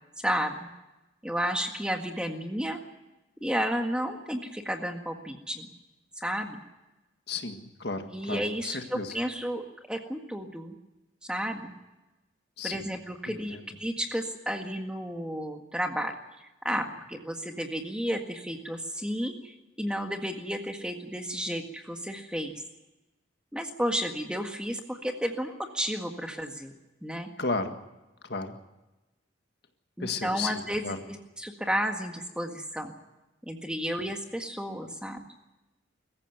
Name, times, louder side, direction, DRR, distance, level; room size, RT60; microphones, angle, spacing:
voice 1, 0.2-0.7 1.2-2.8 3.4-5.7 6.2-6.6 8.1-9.6 9.9-10.7 11.2-11.7 12.6-22.6 23.5-26.7 27.0-27.3 30.0-32.9 33.4-35.2, equal, 5° right, 4 dB, 1.7 m, -32 dB
voice 2, 7.3-9.1 12.6-12.8 13.5-13.6 27.4-27.7 28.3-28.6 30.0-31.0, left 3 dB, 60° left, 6 dB, 1.8 m, -33 dB
23.0 x 15.0 x 9.3 m, 1.0 s
head